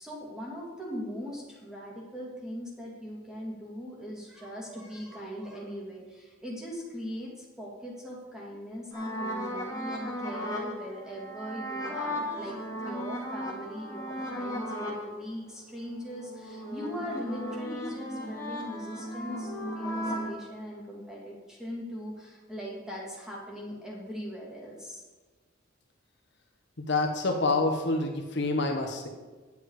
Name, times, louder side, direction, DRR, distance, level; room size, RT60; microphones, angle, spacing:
voice 1, 0.0-25.0, equal, 5° right, -4 dB, 2.6 m, -40 dB
sound 1, 8.9-15.0 15.5-20.3, equal, 15° left, 2.2 m, -36 dB
voice 2, 26.8-29.1, left 2 dB, 60° left, 2 dB, 1.2 m, -27 dB
10.0 x 8.4 x 4.9 m, 1.3 s
head